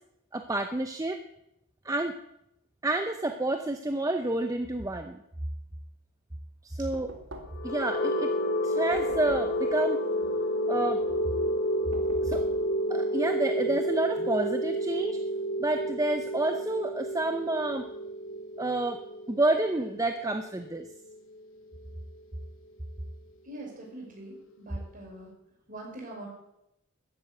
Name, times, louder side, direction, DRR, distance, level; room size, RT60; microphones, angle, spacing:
voice 1, 0.3-1.2 1.8-2.1 2.8-5.2 6.6-7.1 7.6-8.3 8.6-10.0 10.7-11.0 12.2-12.4 12.9-15.2 15.6-17.9 18.6-19.0 19.3-20.9, right 2 dB, 15° right, 7 dB, 0.7 m, -29 dB
Knock, 6.9-7.8 8.9-9.7 11.9-12.6, right 1 dB, 65° right, 2.5 m, -45 dB
sound 1, 7.5-21.4, equal, 65° left, 1.3 m, -30 dB
voice 2, 23.4-25.3 25.7-26.3, right 1 dB, 40° right, -1 dB, 5.7 m, -43 dB
14.0 x 10.0 x 8.1 m, 0.82 s
head